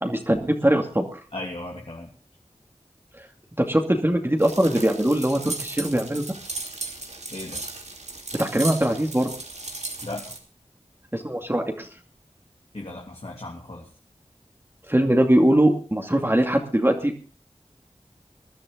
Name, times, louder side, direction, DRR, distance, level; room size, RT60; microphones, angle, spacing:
voice 1, 0.0-1.2 3.6-6.2 8.4-9.3 11.1-11.9 14.9-17.2, right 1 dB, 20° right, 2 dB, 2.5 m, -21 dB
voice 2, 1.3-2.1 7.3-7.6 10.0-10.2 12.7-13.9, left 2 dB, 60° left, -1 dB, 3.0 m, -36 dB
sound 1, 4.4-10.4, right 3 dB, 75° right, 2.9 m, -36 dB
21.0 x 11.5 x 3.9 m, 0.38 s
wide cardioid pair, 45°, 12 cm